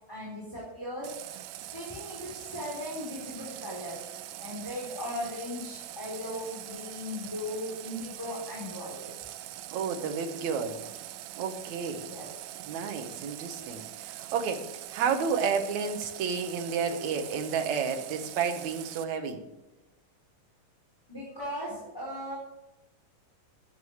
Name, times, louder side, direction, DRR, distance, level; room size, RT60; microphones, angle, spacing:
voice 1, 0.1-1.1 1.5-4.0 4.4-9.1 12.0-12.3 21.1-22.4, left 1 dB, 5° left, -6 dB, 4.0 m, -38 dB
Water tap faucet, 1.0-19.1, right 13 dB, 85° right, 2.6 m, -43 dB
voice 2, 9.7-10.8 11.4-12.1 12.7-19.4, right 6 dB, 60° right, 6 dB, 2.4 m, -31 dB
12.5 x 10.5 x 6.5 m, 1.0 s
omnidirectional pair, 4.1 m